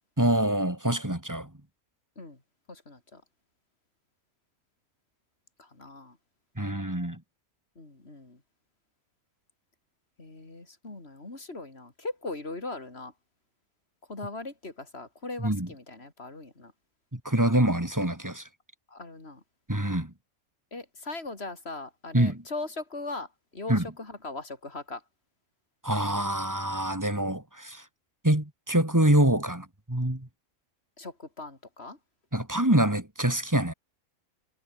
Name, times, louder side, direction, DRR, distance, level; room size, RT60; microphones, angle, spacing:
voice 1, 0.2-1.5 6.6-7.2 15.4-15.7 17.1-18.4 19.7-20.1 22.1-22.4 23.7-23.9 25.8-27.8 28.2-30.3 32.3-33.7, right 1 dB, 10° right, 2.6 m, -25 dB
voice 2, 2.7-3.2 5.6-6.1 7.8-8.4 10.2-13.1 14.1-16.7 18.9-19.4 20.7-23.3 23.5-25.0 31.0-32.0, left 2 dB, 45° left, 4.7 m, -39 dB
omnidirectional pair, 1.5 m